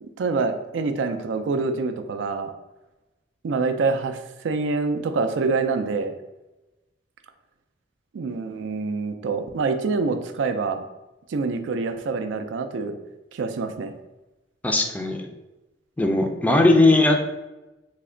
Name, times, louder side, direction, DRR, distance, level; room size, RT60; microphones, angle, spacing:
voice 1, 0.0-2.5 3.4-6.1 8.1-10.9 11.3-13.0 13.3-13.9, right 4 dB, 80° right, 8 dB, 0.4 m, -26 dB
voice 2, 14.6-15.3 16.0-17.2, left 2 dB, 10° left, 3 dB, 0.3 m, -18 dB
3.3 x 2.1 x 3.7 m, 1.0 s
head